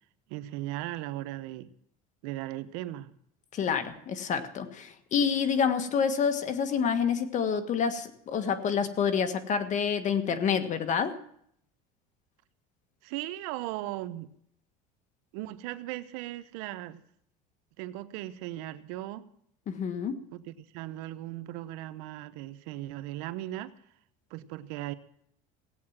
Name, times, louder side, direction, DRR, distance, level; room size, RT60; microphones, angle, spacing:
voice 1, 0.3-1.7 2.2-3.1 13.0-14.3 15.3-17.0 17.8-19.2 20.3-23.7 24.3-24.9, right 15 dB, 80° right, 12 dB, 0.9 m, -37 dB
voice 2, 3.5-11.2 19.7-20.2, left 6 dB, 45° left, 9 dB, 1.6 m, -28 dB
17.0 x 8.7 x 7.4 m, 0.68 s
supercardioid pair, 120°, 18 cm